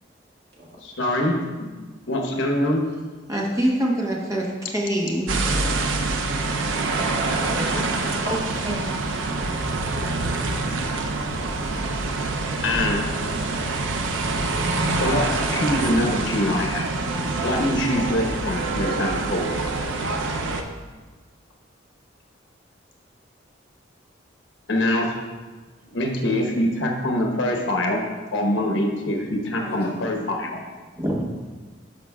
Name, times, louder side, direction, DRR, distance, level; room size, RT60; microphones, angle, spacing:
voice 1, 0.8-1.7 2.1-2.8 12.6-13.0 15.0-16.9 17.4-19.5 24.7-25.1 25.9-28.0 28.3-30.6, left 1 dB, 85° left, 1 dB, 1.0 m, -24 dB
voice 2, 3.3-5.5 31.0-31.2, right 1 dB, 15° right, -2 dB, 1.0 m, -24 dB
sound 1, 5.3-20.6, right 3 dB, 80° right, 0.6 m, -26 dB
voice 3, 7.4-9.5 17.6-17.7 29.6-30.2, right 1 dB, 55° right, -6 dB, 1.8 m, -34 dB
12.5 x 5.0 x 2.3 m, 1.4 s
head